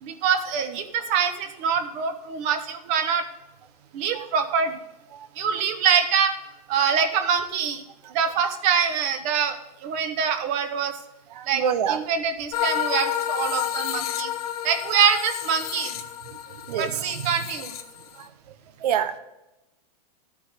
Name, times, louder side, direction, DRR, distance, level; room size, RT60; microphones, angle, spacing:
voice 1, 0.0-3.2 3.9-4.8 5.4-6.3 6.7-7.8 8.1-9.6 9.8-10.9 11.5-11.6 11.9-14.3 14.6-16.0 16.8-17.7, right 7 dB, 35° right, 8 dB, 1.1 m, -24 dB
voice 2, 11.3-12.0 16.3-17.5 18.2-18.3 18.8-19.2, right 8 dB, 75° right, 11 dB, 1.1 m, -28 dB
sound 1, 12.5-18.3, left 11 dB, 65° left, 1.0 m, -30 dB
12.5 x 8.4 x 3.6 m, 0.95 s
supercardioid pair, 160°, 21 cm